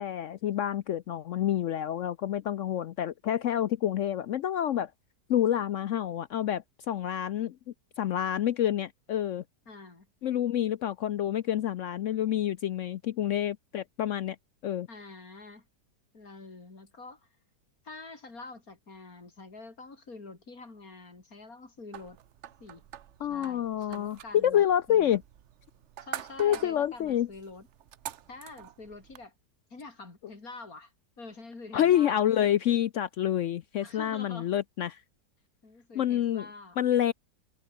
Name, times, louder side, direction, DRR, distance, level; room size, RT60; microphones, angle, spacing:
voice 1, 0.0-4.9 5.3-7.6 8.0-9.4 10.2-14.4 14.6-14.9 23.2-25.2 26.4-27.3 31.7-35.0 35.9-36.5 36.8-37.1, left 11 dB, 70° left, 0.7 m, -28 dB
voice 2, 9.7-10.1 14.9-15.7 16.1-17.3 17.8-22.2 22.6-22.8 23.3-25.2 26.0-27.7 28.3-29.3 29.7-30.9 31.2-32.2 33.8-34.5 35.6-36.8, left 3 dB, 55° left, 4.4 m, -46 dB
sound 1, 21.9-29.3, right 10 dB, 55° right, 0.8 m, -46 dB
omnidirectional pair, 1.9 m